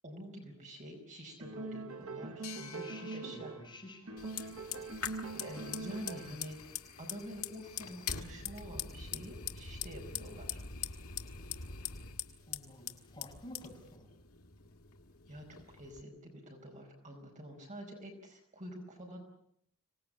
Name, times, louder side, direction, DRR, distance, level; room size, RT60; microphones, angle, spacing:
voice 1, 0.0-3.6 5.4-10.6 15.3-19.2, equal, 35° right, 2 dB, 4.9 m, -47 dB
sound 1, 1.4-3.7 4.1-6.5, right 3 dB, 70° right, 1.2 m, -43 dB
sound 2, 2.4-5.8, left 9 dB, 65° left, 1.8 m, -55 dB
voice 2, 2.6-4.7 12.5-14.1, left 1 dB, 20° left, -1 dB, 7.8 m, -51 dB
Fire, 4.2-16.0, left 8 dB, 80° left, 2.0 m, -43 dB
25.5 x 19.0 x 8.7 m, 0.72 s
head